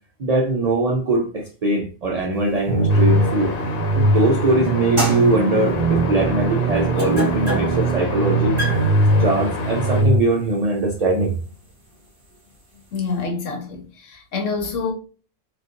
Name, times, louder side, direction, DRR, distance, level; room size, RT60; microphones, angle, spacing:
voice 1, 0.2-3.5 3.9-8.6 9.2-11.4, right 2 dB, 90° right, 0.3 m, -21 dB
sound 1, 2.4-4.3 4.7-13.2, left 1 dB, 25° right, 1.2 m, -32 dB
sound 2, 2.7-10.2, right 2 dB, 25° left, 1.0 m, -20 dB
sound 3, 2.9-10.0, left 3 dB, 50° left, 0.5 m, -31 dB
voice 2, 12.9-14.9, left 4 dB, 80° left, 1.2 m, -27 dB
4.0 x 2.3 x 2.4 m
omnidirectional pair, 1.3 m